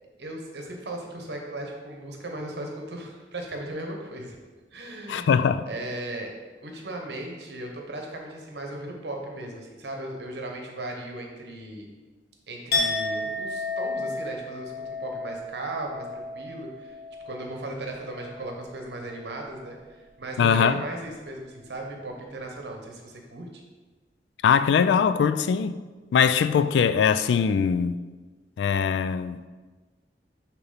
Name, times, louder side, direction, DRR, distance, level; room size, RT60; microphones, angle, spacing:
voice 1, 0.2-4.4 4.7-5.4 5.7-6.3 6.6-11.9 12.5-14.7 15.0-17.0 17.2-23.6, right 1 dB, 75° right, 0.9 m, -37 dB
voice 2, 5.1-5.7 20.4-20.8 24.4-25.7 26.1-28.0 28.6-29.5, left 6 dB, 85° left, 0.3 m, -21 dB
Chink clink, 12.7-18.6 18.9-19.3, left 2 dB, 60° left, 1.4 m, -32 dB
6.5 x 3.0 x 5.6 m
head